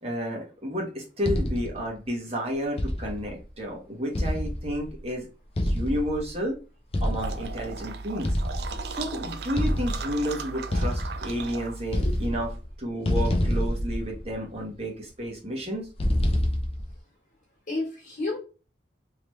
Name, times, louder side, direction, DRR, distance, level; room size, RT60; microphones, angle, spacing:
voice 1, 0.0-5.3 5.6-6.6 7.0-8.4 8.9-12.5 12.8-15.9, equal, 30° right, -1 dB, 1.2 m, -31 dB
sound 1, 1.2-1.9 2.8-3.4 4.1-5.0 5.6-6.3 6.9-7.5 8.2-9.0 9.6-10.2 10.7-11.5 11.8-12.7 13.0-14.5 16.0-17.0, equal, 30° left, 0.4 m, -27 dB
sound 2, 7.2-12.3, right 4 dB, 55° right, 0.4 m, -37 dB
voice 2, 8.7-9.0 11.9-12.3 17.7-18.4, left 2 dB, 45° left, -3 dB, 1.4 m, -33 dB
3.3 x 3.0 x 3.1 m, 0.33 s
head